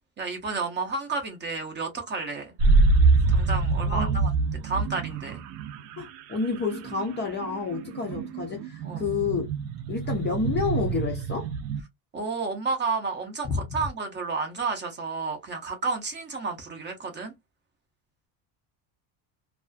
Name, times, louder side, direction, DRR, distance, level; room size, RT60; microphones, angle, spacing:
voice 1, 0.2-2.5 3.3-4.3 4.6-5.4 8.8-9.1 12.1-17.3, right 4 dB, 25° right, 0.5 m, -31 dB
sound 1, 2.6-11.8, right 3 dB, 65° right, 0.6 m, -25 dB
voice 2, 3.9-4.2 6.0-9.5 9.9-11.5 13.4-13.6, left 5 dB, 25° left, 0.4 m, -29 dB
2.4 x 2.3 x 2.4 m
cardioid pair, 150°, 49 cm